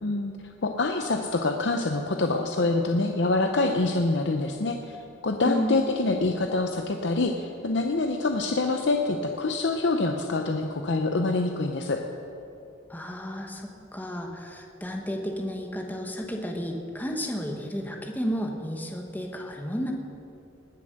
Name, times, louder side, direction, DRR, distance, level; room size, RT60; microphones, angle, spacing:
voice 1, 0.0-0.3 0.6-5.0 5.2-12.0, left 2 dB, 60° left, 4 dB, 0.7 m, -26 dB
voice 2, 5.5-5.8 12.9-19.9, equal, 10° left, 2 dB, 1.1 m, -32 dB
19.5 x 7.1 x 6.6 m, 2.7 s
head